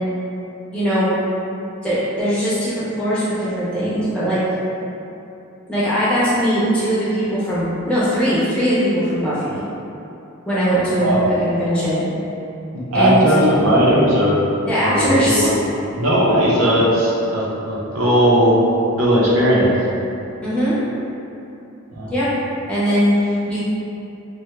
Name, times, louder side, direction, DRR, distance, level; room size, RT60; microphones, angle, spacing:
voice 1, 0.7-1.1 1.8-4.4 5.7-9.6 10.4-12.1 12.9-13.2 14.7-15.5 20.4-20.8 22.1-22.3 22.7-23.6, equal, 5° left, -12 dB, 0.7 m, -20 dB
voice 2, 12.9-14.4 14.8-15.6 16.0-18.6 19.0-19.7 21.9-22.1, equal, 75° right, -6 dB, 0.7 m, -17 dB
2.8 x 2.2 x 3.2 m, 2.8 s
head